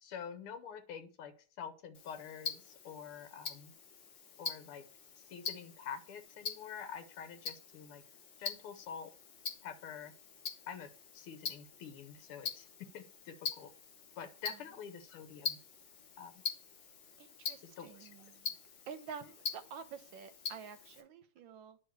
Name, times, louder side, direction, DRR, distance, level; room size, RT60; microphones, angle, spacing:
voice 1, 0.0-3.7 4.4-4.8 5.3-8.0 8.4-9.1 9.6-10.1 10.7-13.7 14.2-15.6 16.2-16.3 17.8-18.3, left 7 dB, 85° left, 1.8 m, -47 dB
Tick-tock, 1.9-21.0, left 6 dB, 65° left, 1.6 m, -45 dB
voice 2, 17.2-18.6 18.9-21.8, right 7 dB, 70° right, 1.3 m, -49 dB
9.9 x 3.5 x 4.6 m
omnidirectional pair, 2.3 m